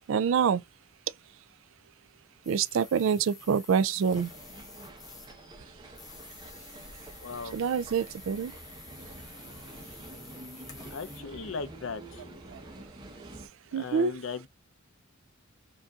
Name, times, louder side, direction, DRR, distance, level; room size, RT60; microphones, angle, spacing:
voice 1, 0.1-0.6 2.5-4.3 7.5-8.5 12.5-12.6 13.7-14.2, right 6 dB, 65° right, 0.3 m, -26 dB
sound 1, 2.4-5.4 5.9-11.2, left 4 dB, 15° left, 1.1 m, -50 dB
sound 2, 4.0-13.5, right 1 dB, 20° right, 0.9 m, -48 dB
voice 2, 7.2-7.6 10.9-12.2 13.7-14.5, left 5 dB, 65° left, 0.6 m, -37 dB
5.1 x 2.6 x 2.3 m
head